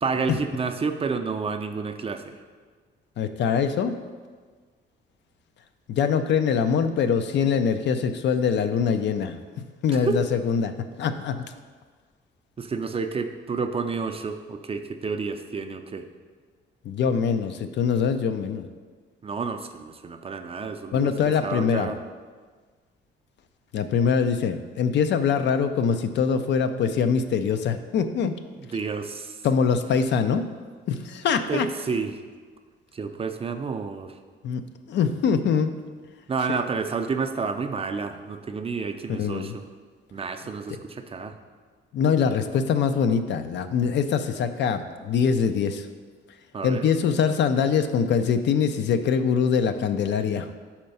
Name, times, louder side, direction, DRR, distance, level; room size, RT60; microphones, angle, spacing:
voice 1, 0.0-2.3 10.0-10.2 12.6-16.0 19.2-21.1 21.4-22.0 28.6-29.4 31.5-32.2 32.9-34.1 36.3-39.6 40.1-41.3 46.5-46.9, right 5 dB, 30° right, 7 dB, 0.4 m, -30 dB
voice 2, 3.2-4.0 5.9-10.7 11.0-11.5 16.8-18.7 20.9-21.9 23.7-28.4 29.4-30.5 30.9-31.7 34.4-34.6 34.9-35.7 36.5-36.6 39.1-39.6 41.9-45.9 46.6-50.5, left 6 dB, 65° left, 9 dB, 0.4 m, -23 dB
4.6 x 4.3 x 5.4 m, 1.5 s
cardioid pair, 90°, 20 cm